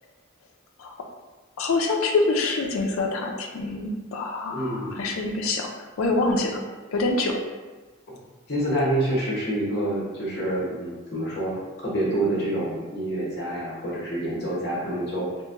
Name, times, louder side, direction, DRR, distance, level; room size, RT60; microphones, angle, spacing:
voice 1, 1.6-5.7 6.0-6.6 6.9-7.4, left 3 dB, 80° left, 2 dB, 0.4 m, -25 dB
voice 2, 4.5-5.1 8.5-11.5 11.8-15.3, right 1 dB, 50° left, -6 dB, 0.9 m, -27 dB
2.9 x 2.5 x 2.4 m, 1.3 s
head